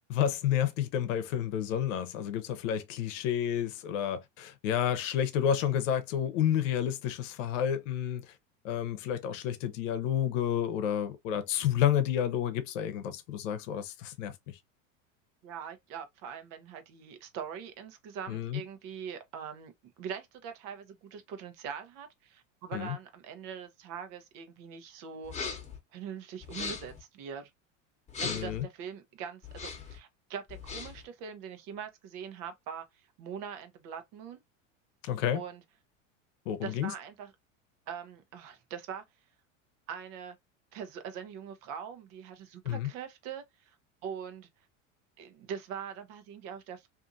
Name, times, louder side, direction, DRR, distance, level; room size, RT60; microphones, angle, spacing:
voice 1, 0.1-8.2 8.6-14.3 18.3-18.6 22.7-23.0 28.2-28.6 35.0-35.4 36.5-36.9 42.6-42.9, left 10 dB, 75° left, 0.8 m, -30 dB
voice 2, 15.4-19.7 20.0-25.3 25.9-27.5 28.2-32.8 33.2-34.4 35.3-35.6 36.6-37.3 37.9-39.0 39.9-40.3 40.7-43.7 44.0-44.5 45.2-46.9, right 7 dB, 55° right, 0.9 m, -42 dB
sound 1, 25.2-25.8 26.4-27.0 28.1-28.6 29.4-30.0 30.5-31.0, left 5 dB, 20° left, 1.0 m, -38 dB
2.7 x 2.5 x 2.5 m
supercardioid pair, 105°, 38 cm